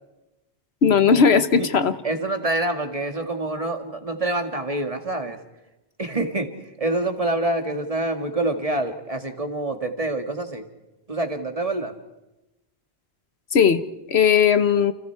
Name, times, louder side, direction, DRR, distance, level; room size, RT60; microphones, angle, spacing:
voice 1, 0.8-1.9 13.5-13.8 14.1-14.9, left 6 dB, 70° left, 12 dB, 1.3 m, -17 dB
voice 2, 2.0-5.4 6.0-10.7 11.1-12.0, right 2 dB, 30° right, 6 dB, 2.0 m, -26 dB
29.5 x 29.0 x 4.7 m, 1.0 s
omnidirectional pair, 1.1 m